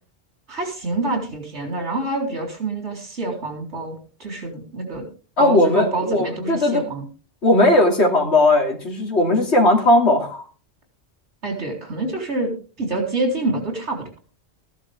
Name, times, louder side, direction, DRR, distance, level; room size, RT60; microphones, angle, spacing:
voice 1, 0.5-5.1 5.4-7.0 11.4-14.0, right 2 dB, 75° right, 2 dB, 4.2 m, -26 dB
voice 2, 5.4-6.9 7.4-10.4, left 1 dB, 70° left, 1 dB, 3.0 m, -17 dB
15.0 x 11.0 x 3.6 m, 0.36 s
omnidirectional pair, 1.2 m